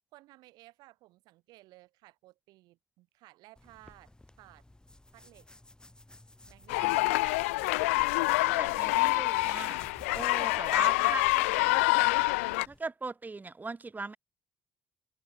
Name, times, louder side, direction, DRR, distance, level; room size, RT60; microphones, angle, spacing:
voice 1, 0.1-4.1 4.4-4.6 5.1-5.5 6.5-7.3 7.8-9.2 10.6-12.7, right 19 dB, 65° right, 5.3 m, -57 dB
sound 1, 3.6-12.8, left 1 dB, 10° left, 4.5 m, -56 dB
sound 2, 6.7-12.7, left 22 dB, 75° left, 0.3 m, -26 dB
voice 2, 8.3-9.8 10.1-11.6 12.7-14.2, right 3 dB, 25° right, 1.5 m, -39 dB
figure-of-eight pair, 45°, 7 cm